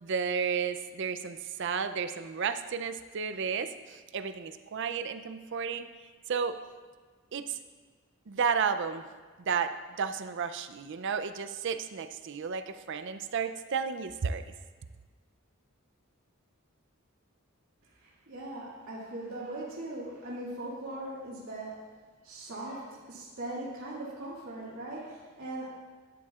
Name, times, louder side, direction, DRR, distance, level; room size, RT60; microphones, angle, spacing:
voice 1, 0.0-5.9 6.3-6.6 7.3-7.6 8.3-9.0 9.5-14.4, right 6 dB, 60° right, 10 dB, 0.5 m, -32 dB
voice 2, 18.0-21.8 22.2-25.7, right 1 dB, 80° right, -8 dB, 2.2 m, -40 dB
12.5 x 10.0 x 2.4 m, 1.5 s
head